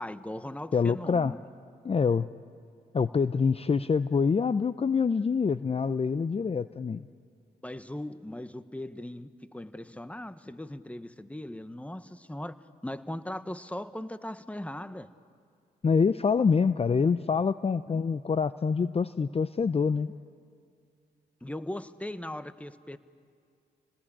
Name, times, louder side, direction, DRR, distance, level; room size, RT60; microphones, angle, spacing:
voice 1, 0.0-1.4 7.6-12.6 12.8-15.1 17.9-18.0 21.4-23.0, left 1 dB, 5° left, 1.2 m, -39 dB
voice 2, 0.7-1.3 1.8-2.3 2.9-7.1 15.8-20.1, left 5 dB, 35° left, 0.6 m, -26 dB
29.5 x 19.5 x 8.8 m
supercardioid pair, 45°, 18 cm